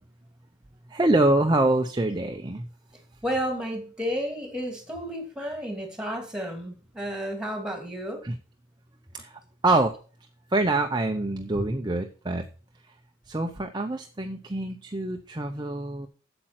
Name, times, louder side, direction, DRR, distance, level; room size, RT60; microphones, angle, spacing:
voice 1, 0.9-2.7 8.2-8.3 9.1-9.9 10.5-12.4 12.9-13.0 13.3-16.1, right 2 dB, 20° right, 5 dB, 0.6 m, -25 dB
voice 2, 3.2-8.2, equal, 5° right, 4 dB, 2.5 m, -32 dB
8.4 x 7.7 x 5.8 m, 0.39 s
head